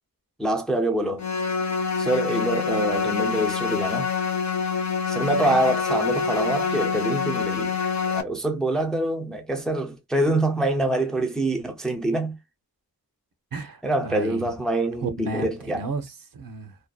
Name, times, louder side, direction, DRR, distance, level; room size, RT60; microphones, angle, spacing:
voice 1, 0.4-1.2 2.0-4.1 5.1-7.7 8.1-12.4 13.8-15.8, right 1 dB, ahead, 0.4 m, -25 dB
sound 1, 1.2-8.2, left 5 dB, 50° left, 0.5 m, -26 dB
voice 2, 13.5-14.5 15.0-16.8, right 3 dB, 65° right, 0.7 m, -33 dB
2.6 x 2.2 x 2.2 m
wide cardioid pair, 110°, 37 cm